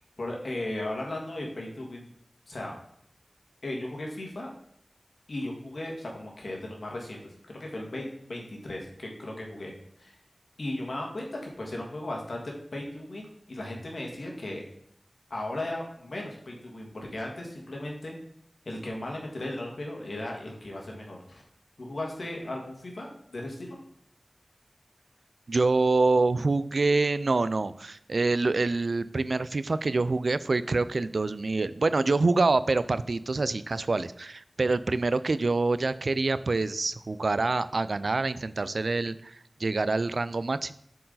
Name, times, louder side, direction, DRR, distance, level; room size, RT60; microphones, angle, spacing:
voice 1, 0.2-2.1 2.5-2.7 3.6-4.5 5.3-7.2 7.5-9.7 10.0-10.2 10.6-14.6 15.3-18.1 18.6-21.4 21.8-23.8, left 1 dB, 80° left, 0 dB, 1.7 m, -36 dB
voice 2, 25.5-40.7, right 3 dB, 75° right, 15 dB, 0.3 m, -26 dB
7.4 x 4.6 x 3.9 m, 0.70 s
wide cardioid pair, 60°, 0 cm